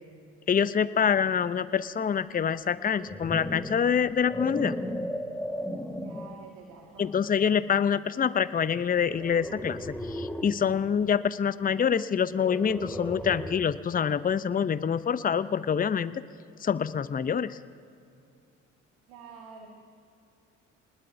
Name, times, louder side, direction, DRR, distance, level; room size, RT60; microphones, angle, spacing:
voice 1, 0.5-4.7 7.0-16.2 16.6-17.6, left 7 dB, 25° left, 15 dB, 0.6 m, -26 dB
sound 1, 2.8-6.4 7.0-7.3 9.1-10.6 12.3-13.8, equal, ahead, 1.7 m, -36 dB
voice 2, 6.0-7.1 19.1-19.7, right 6 dB, 75° right, 0 dB, 2.0 m, -47 dB
25.0 x 20.5 x 2.7 m, 2.4 s
hypercardioid pair, 55°, 36 cm